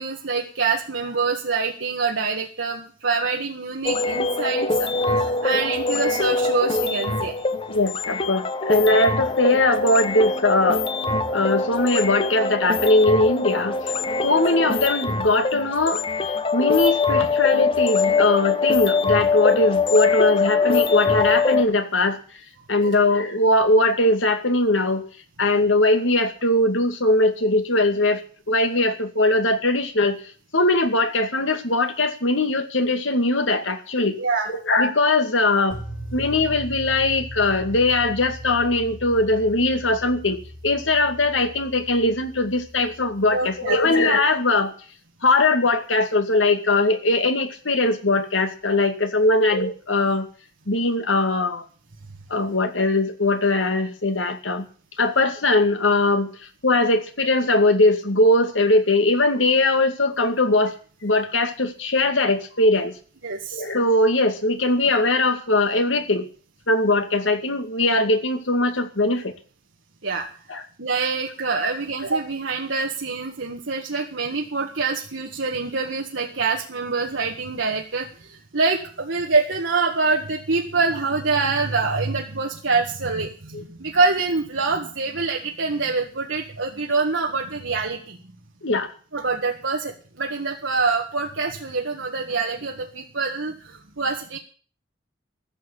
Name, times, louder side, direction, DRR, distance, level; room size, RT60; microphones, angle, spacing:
voice 1, 0.0-7.3 8.9-9.0 14.2-14.4 22.8-22.9 34.2-34.5 43.3-43.8 63.2-63.7 70.0-70.3 70.8-88.2 89.1-94.4, right 4 dB, 75° right, 0 dB, 1.8 m, -25 dB
sound 1, 3.8-21.6, left 4 dB, 30° left, 1.1 m, -23 dB
voice 2, 7.7-10.9 11.3-13.9 14.2-22.2 22.7-25.1 25.4-28.2 28.5-30.2 30.5-34.2 34.5-35.8 36.1-44.7 45.2-50.3 50.7-51.6 52.3-54.7 55.0-60.8 61.0-62.9 63.5-66.3 66.7-69.3 70.5-70.6 83.5-83.6 88.6-88.9, left 2 dB, 80° left, 7 dB, 2.3 m, -20 dB
sound 2, 35.7-43.8, right 1 dB, 45° left, 5.2 m, -39 dB
14.0 x 7.2 x 9.9 m, 0.41 s
head